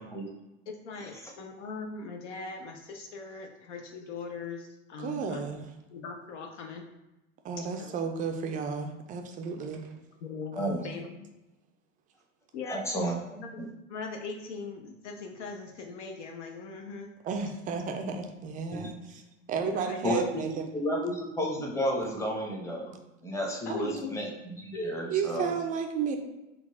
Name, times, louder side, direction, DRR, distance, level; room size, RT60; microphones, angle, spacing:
voice 1, 0.7-5.4 5.9-6.8 7.6-7.9 10.2-10.6 10.8-11.3 12.5-17.1 19.6-20.0 23.6-24.2, left 4 dB, 65° left, 3 dB, 0.6 m, -40 dB
voice 2, 5.0-5.7 7.4-9.9 10.5-10.9 17.2-19.2 19.5-20.7 23.7-23.8 25.1-26.2, right 5 dB, 20° right, 5 dB, 0.4 m, -33 dB
voice 3, 12.6-13.2 13.6-13.7 20.0-20.4 20.7-22.9 23.2-25.5, equal, 5° left, -1 dB, 0.8 m, -31 dB
3.9 x 2.3 x 3.5 m, 0.97 s
figure-of-eight pair, 80°, 38 cm